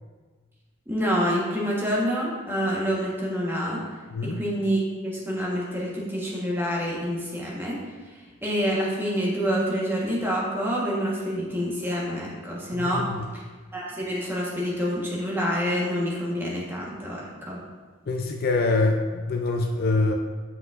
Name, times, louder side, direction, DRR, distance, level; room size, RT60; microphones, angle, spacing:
voice 1, 0.9-3.8 4.2-7.8 8.4-13.1 13.7-17.6, equal, 10° right, -4 dB, 1.1 m, -27 dB
voice 2, 4.1-4.4 12.7-13.3 18.1-20.1, left 3 dB, 45° left, 3 dB, 0.4 m, -25 dB
7.9 x 5.9 x 2.4 m, 1.4 s
head